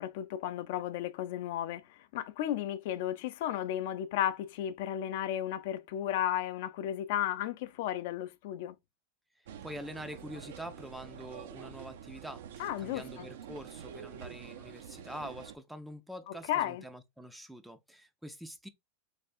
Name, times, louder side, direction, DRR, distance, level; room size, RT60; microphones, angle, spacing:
voice 1, 0.0-1.8 2.1-8.7 12.6-13.3 16.3-16.8, left 11 dB, 60° left, 0.5 m, -34 dB
sound 1, 9.5-15.6, right 8 dB, 75° right, 0.6 m, -47 dB
voice 2, 9.6-18.7, equal, 5° right, 0.4 m, -45 dB
3.3 x 3.3 x 2.5 m
supercardioid pair, 145°, 0 cm